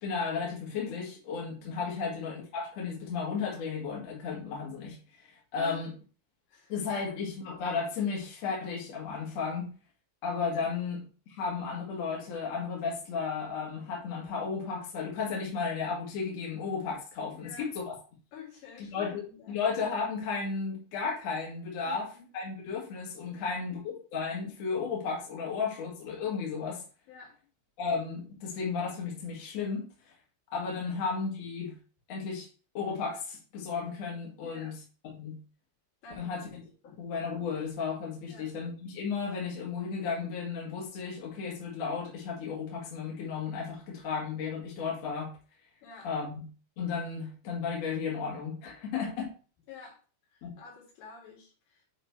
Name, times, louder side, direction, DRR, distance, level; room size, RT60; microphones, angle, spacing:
voice 1, 0.0-5.9 6.7-9.7 10.2-11.0 11.3-17.9 18.9-19.2 19.5-22.1 22.3-26.8 27.8-30.1 30.5-31.7 32.1-32.5 32.7-34.8 35.1-35.4 36.2-36.6 37.0-45.3 46.0-46.4 46.8-49.3 50.4-50.6, left 5 dB, 50° left, -3 dB, 2.3 m, -34 dB
voice 2, 17.3-17.7 18.3-19.6 21.9-22.3 23.3-23.6 27.1-27.3 30.8-31.0 34.4-34.7 36.0-36.4 36.8-37.0 38.3-38.5 45.8-46.1 48.9-49.1 49.7-50.0 50.3-51.9, left 5 dB, 70° left, -2 dB, 4.3 m, -50 dB
8.1 x 3.2 x 4.6 m, 0.37 s
omnidirectional pair, 5.3 m